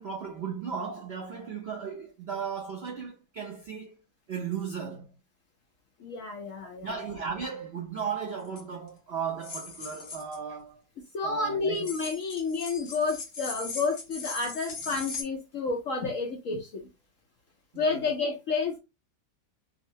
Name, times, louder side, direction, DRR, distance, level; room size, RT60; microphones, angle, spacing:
voice 1, 0.0-4.0 4.3-5.1 6.8-10.8 11.2-11.9 17.7-18.0, right 6 dB, 80° right, 0.5 m, -36 dB
voice 2, 6.0-7.0 11.1-16.8 17.8-18.8, left 4 dB, 65° left, 0.8 m, -30 dB
sound 1, 8.5-8.6 9.4-10.4 11.8-15.2, left 4 dB, 50° left, 1.0 m, -39 dB
3.7 x 2.1 x 2.7 m
omnidirectional pair, 2.0 m